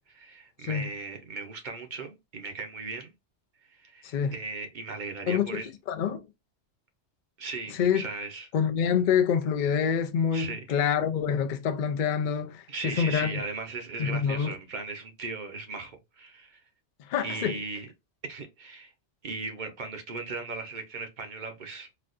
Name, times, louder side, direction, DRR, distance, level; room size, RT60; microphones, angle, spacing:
voice 1, 0.0-3.1 3.7-5.7 7.4-8.5 10.3-10.7 12.7-16.6 17.2-17.9 18.2-18.9 19.2-21.9, right 3 dB, 50° right, 0.7 m, -37 dB
voice 2, 4.0-4.3 5.3-5.6 5.9-6.2 7.8-8.1 8.5-13.4 14.0-14.5 17.1-17.5, left 7 dB, 55° left, 0.5 m, -26 dB
4.1 x 2.2 x 2.5 m
omnidirectional pair, 1.2 m